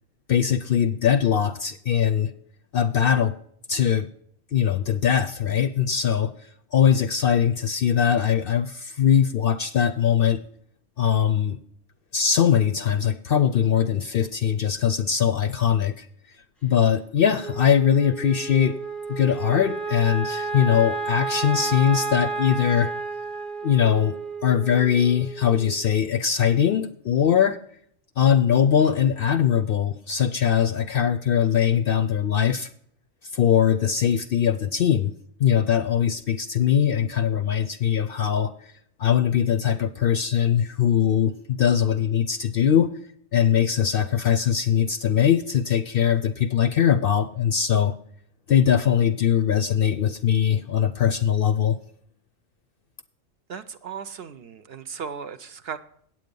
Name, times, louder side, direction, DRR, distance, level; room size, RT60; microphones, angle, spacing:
voice 1, 0.3-2.3 2.7-3.4 3.7-4.1 4.5-6.4 6.7-10.4 11.0-11.6 12.1-16.1 16.6-18.8 19.1-22.9 23.6-27.6 28.2-32.7 33.3-35.1 35.4-38.7 39.0-42.9 43.3-47.9 48.5-51.8, left 8 dB, 60° left, 10 dB, 0.6 m, -21 dB
Wind instrument woodwind instrument, 17.4-25.9, right 4 dB, ahead, 0.7 m, -31 dB
voice 2, 53.5-55.8, right 6 dB, 60° right, 10 dB, 0.7 m, -36 dB
8.8 x 7.9 x 5.3 m, 0.65 s
omnidirectional pair, 1.3 m